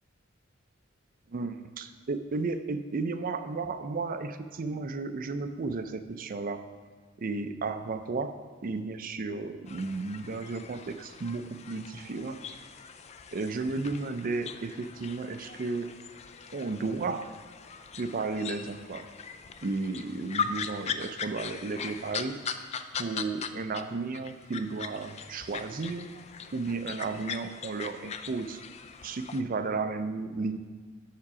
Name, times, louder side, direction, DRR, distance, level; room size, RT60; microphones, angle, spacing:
voice 1, 1.3-6.7 7.2-8.4 8.6-12.4 13.3-15.9 16.5-17.3 17.9-19.1 19.6-22.4 22.9-26.1 26.5-28.6 29.0-30.6, right 3 dB, 45° right, 10 dB, 0.4 m, -33 dB
sound 1, 9.7-23.8 24.1-29.4, left 6 dB, 35° left, 0.3 m, -40 dB
7.4 x 5.9 x 4.7 m, 1.5 s
head